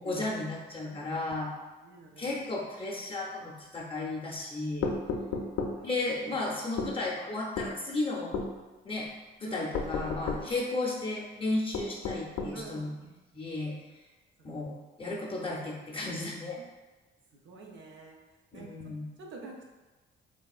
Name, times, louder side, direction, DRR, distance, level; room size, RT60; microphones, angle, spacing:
voice 1, 0.0-1.5 2.2-5.0 5.8-8.3 8.8-9.1 9.4-12.9 13.3-14.0 14.4-16.6 18.5-19.1, left 2 dB, 25° left, -3 dB, 0.5 m, -34 dB
voice 2, 0.8-1.2 1.8-2.4 5.4-6.0 9.4-9.7 12.5-13.0 14.4-14.5 16.6-16.7 17.3-18.2 18.5-19.6, right 3 dB, 75° right, 0 dB, 0.6 m, -48 dB
sound 1, 4.8-5.8 6.8-7.0 7.6-7.7 8.3-8.5 9.7-10.5 11.7-12.6, left 4 dB, 80° left, 0.4 m, -32 dB
3.3 x 2.3 x 2.3 m, 1.2 s
cardioid pair, 90°, 20 cm